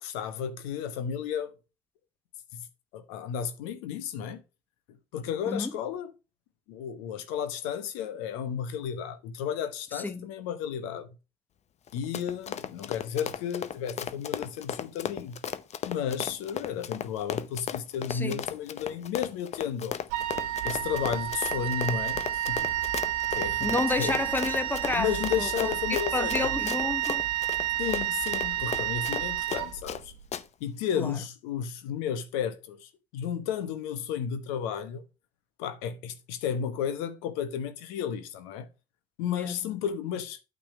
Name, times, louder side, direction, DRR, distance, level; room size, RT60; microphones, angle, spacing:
voice 1, 0.0-1.5 2.5-2.7 2.9-4.4 5.1-6.1 6.7-11.1 11.9-15.4 15.8-20.0 20.6-22.7 23.3-24.1 25.0-26.5 27.8-30.1 30.6-35.0 35.6-38.7 39.2-40.4, left 8 dB, 70° left, 1.1 m, -33 dB
voice 2, 9.9-10.3 18.1-18.4 23.6-27.3 31.0-31.1 39.3-39.7, left 3 dB, 10° left, 1.0 m, -31 dB
Run, 11.9-30.0 30.3-30.4, left 8 dB, 35° left, 0.8 m, -35 dB
Wind instrument woodwind instrument, 20.1-30.2, right 12 dB, 65° right, 1.0 m, -30 dB
8.8 x 3.9 x 6.0 m
hypercardioid pair, 75°, 19 cm